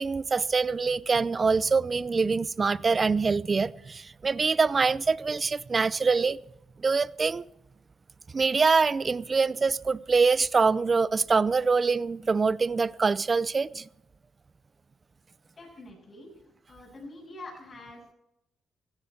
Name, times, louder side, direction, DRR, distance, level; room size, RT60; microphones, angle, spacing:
voice 1, 0.0-6.4 6.8-7.5 8.3-13.9, right 4 dB, 30° right, 0.5 m, -24 dB
voice 2, 15.6-16.3 16.7-18.1, left 2 dB, 35° left, 7.3 m, -45 dB
16.0 x 15.0 x 4.5 m
cardioid pair, 90°, 0 cm